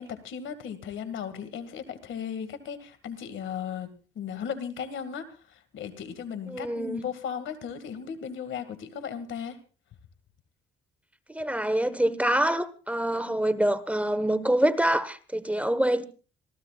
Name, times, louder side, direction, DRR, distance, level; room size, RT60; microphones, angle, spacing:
voice 1, 0.0-9.6, left 7 dB, 75° left, 2.1 m, -36 dB
voice 2, 6.5-7.0 11.3-16.0, right 1 dB, 5° right, 1.2 m, -25 dB
27.0 x 15.0 x 2.4 m
cardioid pair, 90°, 20 cm